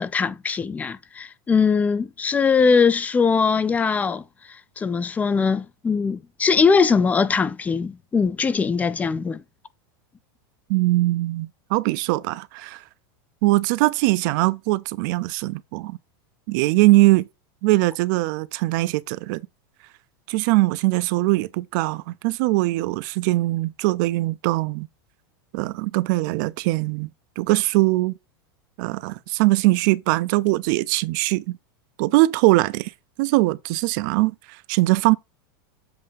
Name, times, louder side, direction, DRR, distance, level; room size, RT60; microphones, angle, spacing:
voice 1, 0.0-4.2 4.8-9.4, left 5 dB, 10° left, 0.4 m, -21 dB
voice 2, 10.7-12.8 13.4-16.0 16.5-17.3 17.6-19.4 20.3-24.9 25.5-27.1 27.4-28.1 28.8-31.6 32.0-32.9 33.2-35.1, right 20 dB, 55° right, 0.5 m, -21 dB
7.8 x 2.7 x 5.2 m
supercardioid pair, 145°, 12 cm